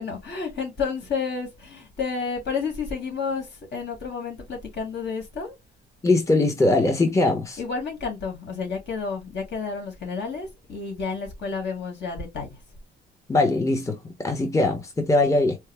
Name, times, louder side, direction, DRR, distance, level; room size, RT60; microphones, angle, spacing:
voice 1, 0.0-5.6 7.6-12.6, left 5 dB, 60° left, 2.1 m, -31 dB
voice 2, 6.0-7.6 13.3-15.6, left 2 dB, 15° left, 0.8 m, -21 dB
4.5 x 2.0 x 3.3 m
cardioid pair, 90°, 20 cm